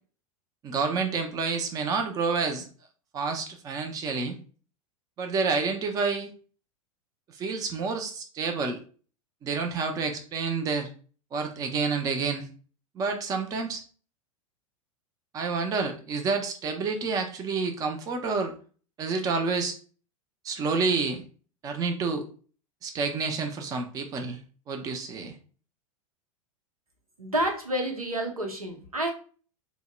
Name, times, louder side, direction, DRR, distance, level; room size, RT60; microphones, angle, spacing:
voice 1, 0.6-2.7 3.1-4.4 5.2-6.3 7.4-8.8 9.4-10.9 11.3-12.5 13.0-13.8 15.3-18.5 19.0-19.8 20.4-21.2 21.6-22.3 22.8-24.4 24.7-25.3, right 4 dB, 20° right, 5 dB, 0.4 m, -29 dB
voice 2, 27.2-29.1, right 1 dB, 85° right, 2 dB, 0.7 m, -29 dB
3.5 x 2.0 x 2.2 m, 0.40 s
figure-of-eight pair, 90°, 18 cm